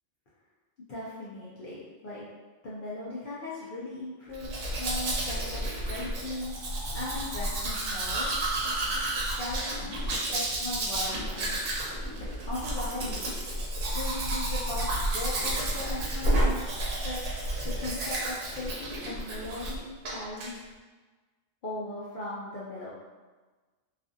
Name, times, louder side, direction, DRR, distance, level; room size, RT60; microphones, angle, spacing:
voice 1, 0.9-2.2 2.6-8.3 8.6-8.8 9.0-11.6 12.2-13.4 13.9-16.6 17.0-17.2 17.6-20.6 21.6-22.9, left 2 dB, 55° left, -8 dB, 0.6 m, -38 dB
Domestic sounds home sounds, 4.3-19.8 20.0-20.5, right 1 dB, 80° right, 1.0 m, -31 dB
2.5 x 2.4 x 2.5 m, 1.3 s
omnidirectional pair, 1.3 m